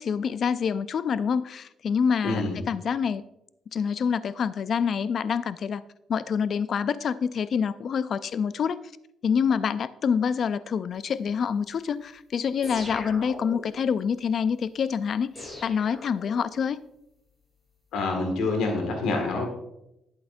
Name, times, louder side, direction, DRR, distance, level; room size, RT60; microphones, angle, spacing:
voice 1, 0.0-3.2 3.7-5.8 6.1-8.8 9.2-16.8, left 6 dB, 55° left, 16 dB, 0.3 m, -26 dB
voice 2, 2.2-2.6 17.9-19.5, left 3 dB, 85° left, 3 dB, 1.8 m, -26 dB
sound 1, 12.6-13.9 15.4-16.7, left 1 dB, 20° left, 3.8 m, -40 dB
11.5 x 8.1 x 2.6 m, 0.86 s
cardioid pair, 90°, 0 cm